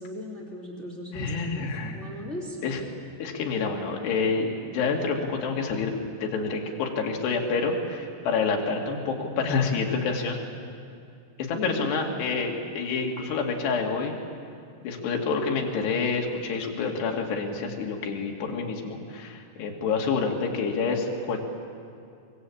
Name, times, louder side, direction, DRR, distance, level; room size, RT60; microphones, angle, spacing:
voice 1, 0.0-2.7 11.5-11.9, left 1 dB, 15° left, -3 dB, 3.1 m, -37 dB
voice 2, 1.1-1.9 2.6-2.8 3.2-5.9 6.2-10.4 11.4-14.2 14.8-21.4, left 4 dB, 75° left, 0 dB, 4.5 m, -28 dB
24.0 x 23.5 x 8.6 m, 2.5 s
omnidirectional pair, 4.9 m